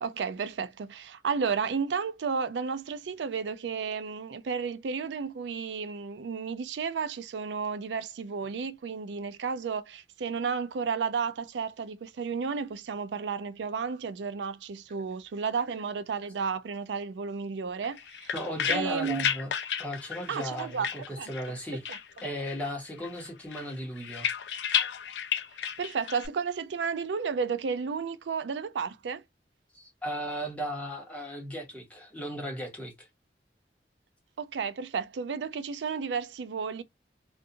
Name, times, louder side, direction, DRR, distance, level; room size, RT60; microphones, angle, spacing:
voice 1, 0.0-18.3 18.7-19.3 20.3-20.9 21.2-21.6 21.9-22.0 25.8-29.2 34.4-36.8, right 5 dB, 85° right, 0.4 m, -32 dB
sound 1, 17.8-21.6 21.8-22.7 23.0-26.3, left 8 dB, 75° left, 0.4 m, -33 dB
voice 2, 18.3-19.5 19.8-21.9 22.2-24.3 29.7-33.1, equal, 10° left, 1.1 m, -36 dB
2.5 x 2.4 x 2.6 m
head